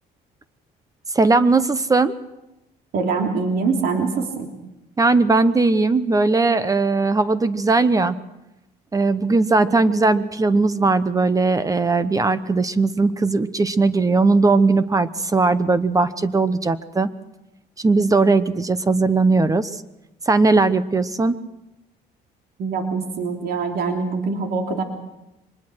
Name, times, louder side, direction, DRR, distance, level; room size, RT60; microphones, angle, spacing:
voice 1, 1.1-2.1 5.0-8.2 8.9-17.1 17.8-19.7 20.3-21.3, right 3 dB, 20° right, 14 dB, 0.9 m, -18 dB
voice 2, 2.9-4.5 22.6-24.8, right 4 dB, 65° right, 3 dB, 3.3 m, -24 dB
23.5 x 20.5 x 6.3 m, 0.93 s
cardioid pair, 110°, 17 cm